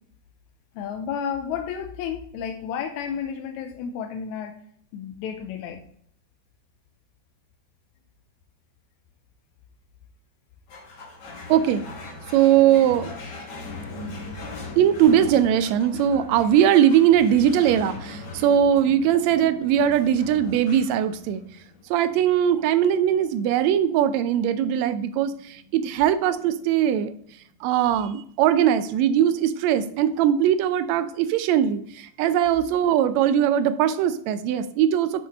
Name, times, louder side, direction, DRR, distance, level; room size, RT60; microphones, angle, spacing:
voice 1, 0.7-4.6 4.9-5.9, left 7 dB, 80° left, 5 dB, 1.9 m, -32 dB
sound 1, 10.7-27.4, left 2 dB, 50° left, 1.3 m, -41 dB
voice 2, 11.5-11.8 12.3-13.1 14.8-21.4 21.9-27.1 27.6-35.3, right 10 dB, 80° right, 11 dB, 1.7 m, -20 dB
7.0 x 4.7 x 4.1 m, 0.63 s
omnidirectional pair, 3.5 m